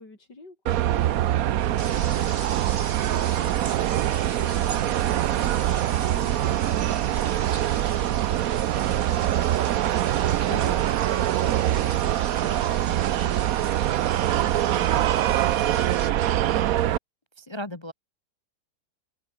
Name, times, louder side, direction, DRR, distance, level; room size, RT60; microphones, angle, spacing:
voice 1, 0.0-3.1 3.3-15.8, left 2 dB, 80° left, 6.4 m, -48 dB
sound 1, 0.7-17.0, right 12 dB, 65° right, 1.0 m, -24 dB
sound 2, 1.6-16.1, right 4 dB, 45° right, 2.7 m, -40 dB
voice 2, 10.5-10.8 17.4-17.9, left 1 dB, 20° left, 1.0 m, -36 dB
open air
omnidirectional pair, 1.8 m